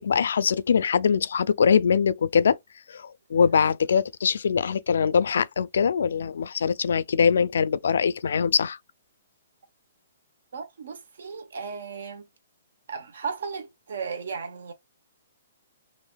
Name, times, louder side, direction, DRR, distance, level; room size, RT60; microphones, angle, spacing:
voice 1, 0.0-2.6 2.9-8.8, left 6 dB, 75° left, 0.3 m, -22 dB
voice 2, 10.5-12.3 12.9-14.7, right 5 dB, 70° right, 0.8 m, -35 dB
3.3 x 2.5 x 2.2 m
hypercardioid pair, 170°, 0 cm